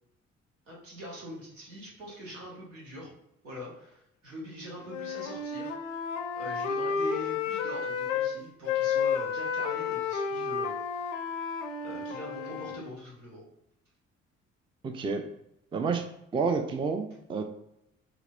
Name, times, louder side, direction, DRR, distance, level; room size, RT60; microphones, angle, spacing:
voice 1, 0.7-3.1 3.4-5.7 6.3-10.7 11.8-13.5, equal, 80° right, -4 dB, 1.2 m, -43 dB
Wind instrument woodwind instrument, 4.8-8.3 8.6-12.9, left 6 dB, 75° left, 0.5 m, -31 dB
voice 2, 14.8-15.2 15.7-16.0 16.3-17.4, right 4 dB, 15° right, 6 dB, 0.4 m, -29 dB
4.7 x 2.8 x 2.4 m, 0.81 s
figure-of-eight pair, 40°, 37 cm